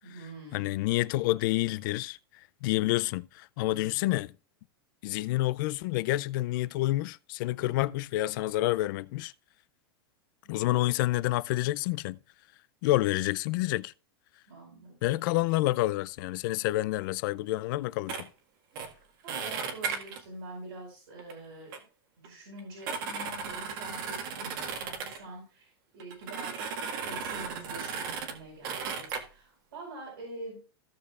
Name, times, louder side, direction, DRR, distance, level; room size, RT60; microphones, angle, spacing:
voice 1, 0.0-0.9 3.6-4.0 7.6-8.0 10.4-11.0 12.9-13.6 14.5-15.3 19.2-21.7 22.2-30.6, right 2 dB, 85° right, 5.0 m, -46 dB
voice 2, 0.5-2.2 2.6-4.3 5.0-9.3 10.5-12.2 12.8-13.9 15.0-18.3, left 17 dB, 55° left, 0.4 m, -28 dB
sound 1, 18.1-18.2 18.8-18.9 19.3-20.2 21.2-21.3 21.7-21.8 22.2-22.3 22.6-25.2 26.0-28.4 28.6-29.2, right 6 dB, 60° right, 1.8 m, -35 dB
16.0 x 6.4 x 2.4 m
supercardioid pair, 135°, 13 cm